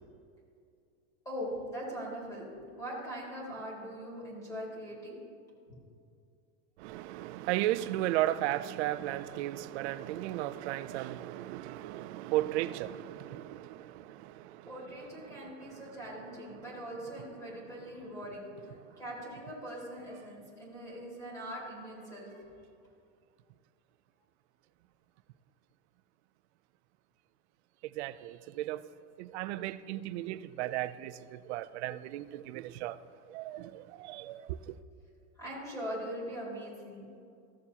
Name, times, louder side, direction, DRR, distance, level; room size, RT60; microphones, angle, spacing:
voice 1, 1.3-2.5 2.7-5.2 14.6-22.3 35.4-37.1, equal, 10° left, 2.3 m, -41 dB
voice 2, 6.8-13.9 28.0-28.8 29.2-31.1 31.5-33.0 33.3-34.4, right 14 dB, 65° right, 0.5 m, -35 dB
15.0 x 7.0 x 2.8 m
supercardioid pair, 165°, 37 cm